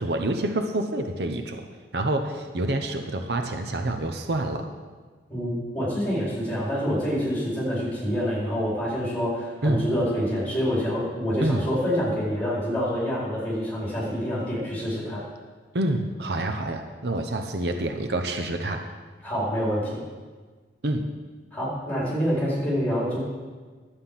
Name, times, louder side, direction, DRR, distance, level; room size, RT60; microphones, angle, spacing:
voice 1, 0.0-1.7 1.9-4.7 9.6-9.9 11.4-11.7 15.7-18.8 20.8-21.1, right 1 dB, 65° right, 5 dB, 0.8 m, -27 dB
voice 2, 5.3-15.2 19.2-20.0 21.5-23.2, equal, 10° left, -7 dB, 4.5 m, -27 dB
12.0 x 8.7 x 5.7 m, 1.4 s
head